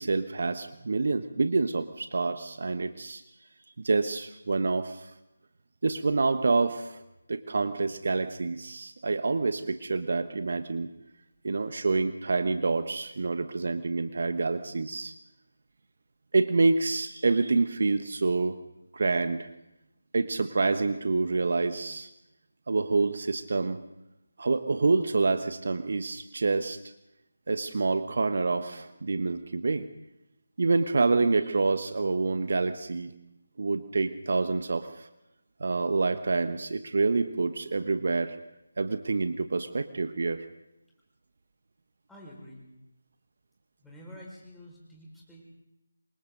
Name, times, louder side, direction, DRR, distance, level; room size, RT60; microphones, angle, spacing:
voice 1, 0.0-3.2 3.8-5.1 5.8-7.0 7.3-10.9 11.4-15.1 16.3-18.6 18.9-19.5 20.1-22.1 22.7-23.8 24.4-26.8 27.5-29.9 30.6-33.1 33.6-35.1 35.6-38.4 38.8-40.5, right 3 dB, 55° right, 10 dB, 1.2 m, -27 dB
voice 2, 42.1-42.7 43.8-45.4, equal, 5° left, -5 dB, 5.3 m, -48 dB
27.5 x 24.5 x 4.0 m, 0.88 s
figure-of-eight pair, 155°, 0 cm